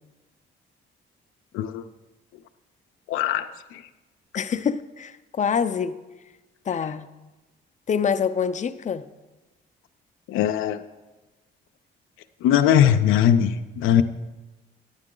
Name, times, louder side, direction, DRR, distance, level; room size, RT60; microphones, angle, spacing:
voice 1, 3.1-3.5 10.3-10.8 12.4-14.0, left 10 dB, 90° left, 8 dB, 0.5 m, -20 dB
voice 2, 4.3-6.0 6.7-7.1 7.9-9.0, left 7 dB, 40° left, 11 dB, 0.5 m, -25 dB
10.5 x 9.9 x 3.8 m, 1.1 s
cardioid pair, 90°, 20 cm